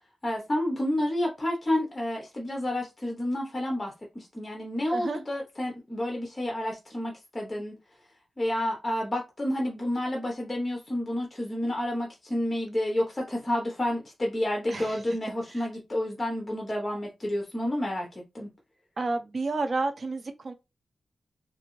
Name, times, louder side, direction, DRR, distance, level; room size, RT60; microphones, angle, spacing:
voice 1, 0.2-7.7 8.4-18.5, left 1 dB, 20° left, 0.8 m, -30 dB
voice 2, 14.7-15.0 15.5-15.7 19.0-20.5, right 3 dB, 40° right, 0.7 m, -30 dB
3.8 x 2.7 x 3.0 m
wide cardioid pair, 150°, 0 cm